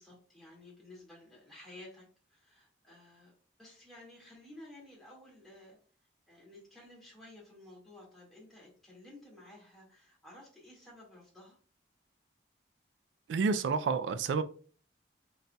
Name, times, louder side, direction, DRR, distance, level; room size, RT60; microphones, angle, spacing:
voice 1, 0.0-3.3 3.6-5.8 6.3-11.6, left 1 dB, ahead, -5 dB, 1.7 m, -54 dB
voice 2, 13.3-14.4, right 5 dB, 85° right, 12 dB, 0.3 m, -29 dB
4.0 x 4.0 x 2.2 m, 0.41 s
head